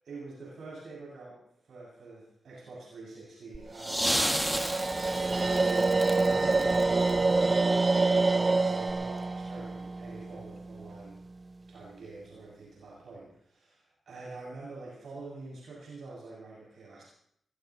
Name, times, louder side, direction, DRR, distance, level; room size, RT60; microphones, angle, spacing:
voice 1, 0.0-1.4 1.6-4.7 5.3-11.2 11.7-13.7 14.1-17.0, right 3 dB, 75° right, -5 dB, 7.7 m, -45 dB
sound 1, 3.5-7.7 8.9-9.0, equal, 5° right, 1.4 m, -33 dB
sound 2, 3.8-10.9, right 3 dB, 35° right, 0.8 m, -27 dB
23.0 x 19.0 x 3.2 m, 0.70 s
cardioid pair, 75°, 0 cm